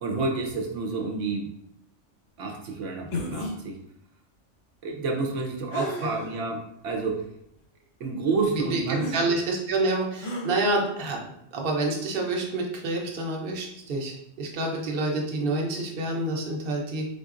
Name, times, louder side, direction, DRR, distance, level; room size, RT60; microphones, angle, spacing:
voice 1, 0.0-1.5 2.4-3.8 4.8-7.2 8.0-9.1, right 3 dB, 80° right, 1 dB, 1.0 m, -29 dB
sound 1, 3.1-3.6 5.7-6.4 7.0-7.1 9.0-9.2 10.2-10.5, left 2 dB, 80° left, 1.1 m, -33 dB
voice 2, 9.1-11.2 11.5-17.1, right 2 dB, 55° right, 0 dB, 0.9 m, -28 dB
4.2 x 3.8 x 2.5 m, 0.77 s
omnidirectional pair, 1.3 m